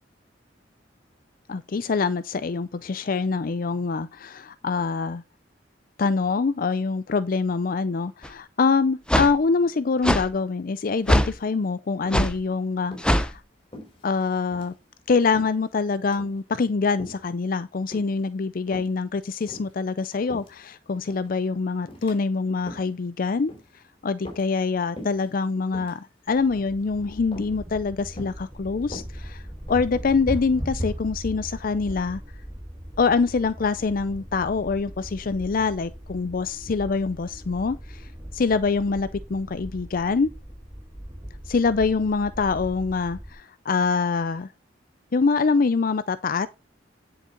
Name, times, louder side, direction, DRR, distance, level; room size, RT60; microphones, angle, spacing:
voice 1, 1.5-5.2 6.0-13.4 14.0-14.7 15.1-23.5 24.0-29.4 29.7-32.2 33.0-40.3 41.5-44.5 45.1-46.5, left 4 dB, 50° left, 0.5 m, -25 dB
sound 1, 8.2-8.3 9.1-9.3 10.0-10.2 11.1-11.3 12.1-12.3 13.0-13.3, equal, 5° left, 0.8 m, -20 dB
sound 2, 11.2-11.7 12.1-12.3 12.8-13.1 13.7-14.2 14.5-14.7 15.3-15.7 16.0-16.4 17.0-17.3 17.9-18.3 18.7-19.0 19.4-20.7 21.1-21.4 21.9-22.2 22.5-22.9 23.5-23.8 24.2-24.7 25.0-25.3 25.6-26.0 26.5-26.8 27.3-27.6 28.2-28.4 28.8-29.9, left 1 dB, 30° left, 4.0 m, -42 dB
sound 3, 26.3-43.3, equal, 20° right, 1.9 m, -39 dB
10.0 x 6.6 x 4.3 m
head